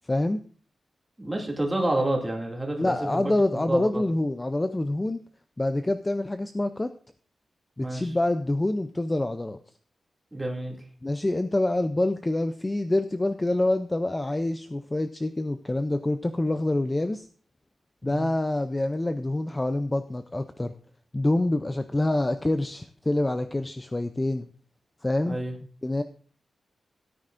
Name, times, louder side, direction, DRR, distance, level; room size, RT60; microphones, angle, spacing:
voice 1, 0.0-0.4 2.8-5.2 5.6-6.9 7.8-9.6 11.0-17.3 18.0-20.7 21.1-24.5 25.0-25.4 25.8-26.0, left 1 dB, 15° left, 9 dB, 0.4 m, -26 dB
voice 2, 1.2-4.0 7.8-8.1 10.3-10.8 18.1-18.3 25.3-25.5, right 1 dB, 10° right, 0 dB, 2.4 m, -29 dB
16.5 x 9.6 x 2.5 m, 0.43 s
wide cardioid pair, 170°, 0 cm